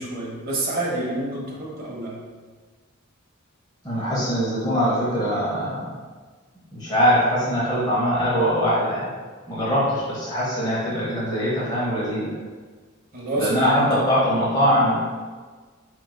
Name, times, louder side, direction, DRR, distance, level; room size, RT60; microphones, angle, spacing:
voice 1, 0.0-2.1 13.1-14.1, right 1 dB, 45° right, -3 dB, 0.9 m, -28 dB
voice 2, 3.8-5.9 6.7-9.1 9.5-12.3 13.4-14.9, equal, 20° left, -9 dB, 0.9 m, -22 dB
4.5 x 3.7 x 2.2 m, 1.5 s
head